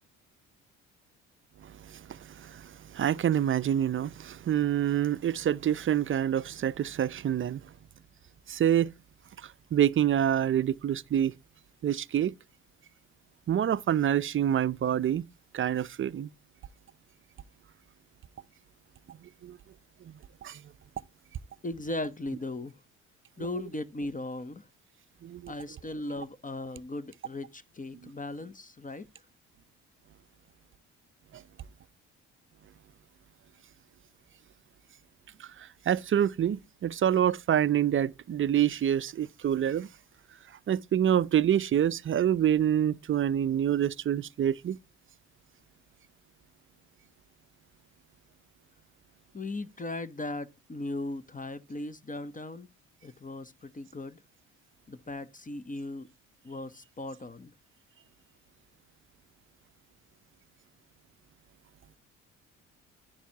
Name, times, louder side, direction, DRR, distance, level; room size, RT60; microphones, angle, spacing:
voice 1, 1.6-7.6 8.5-8.9 9.7-11.3 11.8-12.3 13.5-15.2 15.5-16.3 19.1-19.2 19.4-19.6 20.1-20.2 20.4-20.6 25.2-25.5 35.4-35.5 35.9-39.9 40.7-44.8, right 10 dB, 35° right, 0.5 m, -27 dB
voice 2, 21.6-22.7 23.4-24.7 25.5-29.1 49.3-52.7 53.0-54.2 54.9-56.1 56.4-57.5, left 2 dB, 20° left, 0.9 m, -37 dB
10.0 x 10.0 x 2.9 m
hypercardioid pair, 55°, 36 cm